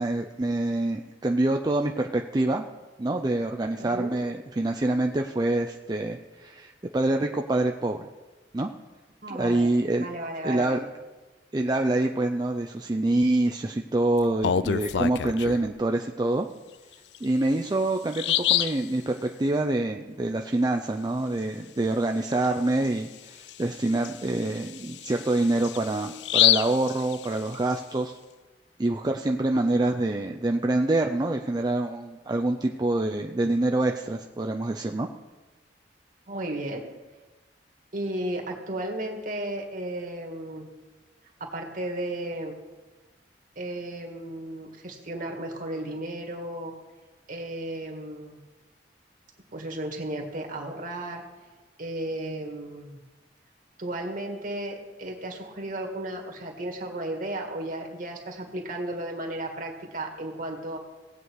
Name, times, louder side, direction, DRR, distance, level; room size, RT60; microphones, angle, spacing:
voice 1, 0.0-2.6 3.0-8.1 8.5-8.7 9.3-10.1 10.4-10.8 11.5-16.5 17.2-28.1 28.8-35.1, right 2 dB, 25° right, 4 dB, 0.5 m, -26 dB
voice 2, 3.8-4.1 9.2-10.9 36.3-36.9 37.9-40.7 41.4-42.5 43.6-46.7 47.3-48.4 49.5-51.2 51.8-53.0 53.8-60.8, right 1 dB, 50° right, 1 dB, 2.0 m, -34 dB
Bird vocalization bird call bird song, 14.2-15.7 17.1-17.2 17.7-17.8 18.1-18.8 22.3-22.5 22.8-22.9 23.5-27.7, left 10 dB, 70° left, 0.4 m, -26 dB
17.5 x 8.3 x 4.7 m, 1.2 s
head